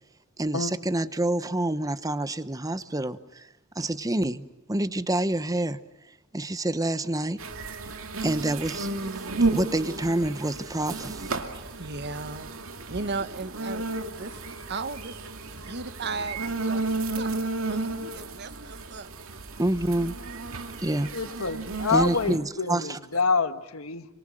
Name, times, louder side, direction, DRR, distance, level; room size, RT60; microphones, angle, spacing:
voice 1, 0.4-3.5 3.8-5.8 6.3-7.4 8.2-8.9 9.5-11.3 19.6-20.2 20.8-21.1 21.9-23.0, right 1 dB, 15° right, 13 dB, 0.9 m, -27 dB
sound 1, 7.4-22.4, right 3 dB, 75° right, 2.3 m, -33 dB
voice 2, 11.5-12.5 12.9-14.4 14.7-15.2 15.5-17.3 17.6-19.1 21.9-22.2, right 3 dB, 50° right, 12 dB, 1.1 m, -36 dB
voice 3, 21.1-24.1, left 4 dB, 85° left, 10 dB, 1.5 m, -27 dB
28.0 x 25.5 x 7.7 m, 0.88 s
head